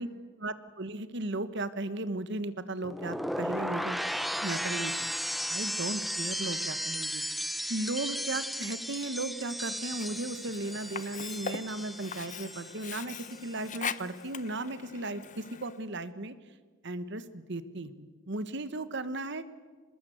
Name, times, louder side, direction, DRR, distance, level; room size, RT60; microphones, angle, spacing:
voice 1, 0.4-4.0 4.4-5.1 5.5-16.3 16.8-19.4, right 2 dB, 60° right, 13 dB, 1.3 m, -36 dB
sound 1, 2.8-12.9 13.2-13.7, equal, ahead, 0.7 m, -35 dB
Sink (filling or washing), 9.9-15.8, left 7 dB, 40° left, 0.7 m, -41 dB
25.0 x 20.5 x 8.0 m, 1.4 s
head